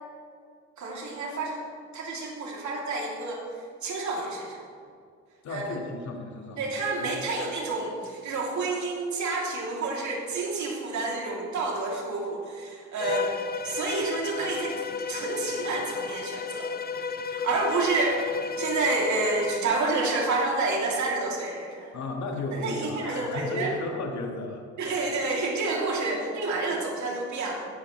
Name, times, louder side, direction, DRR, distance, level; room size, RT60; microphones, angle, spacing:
voice 1, 0.8-3.4 3.8-4.7 5.5-5.8 6.6-13.4 13.6-14.7 15.1-16.7 17.2-18.2 18.6-21.9 22.5-23.7 24.8-27.5, right 3 dB, 70° right, -2 dB, 3.1 m, -29 dB
voice 2, 5.4-6.6 7.0-7.1 21.9-24.6, left 2 dB, 65° left, 2 dB, 2.1 m, -34 dB
Bowed string instrument, 13.0-19.7, left 5 dB, 30° left, 0.6 m, -33 dB
16.0 x 10.0 x 3.3 m, 2.2 s
cardioid pair, 90°, 30 cm